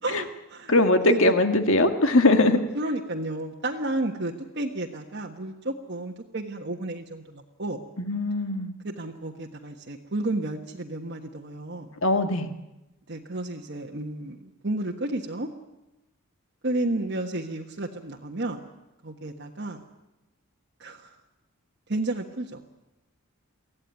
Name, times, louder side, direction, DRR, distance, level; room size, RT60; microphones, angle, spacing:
voice 1, 0.0-1.3 2.7-7.8 8.8-11.9 13.1-15.5 16.6-18.6 19.0-19.9 20.8-21.1 21.9-22.7, right 2 dB, 50° right, 1 dB, 1.4 m, -32 dB
voice 2, 0.7-2.6 8.0-8.7 12.0-12.5, left 2 dB, 65° left, 7 dB, 1.9 m, -21 dB
23.5 x 16.0 x 9.5 m, 1.0 s
head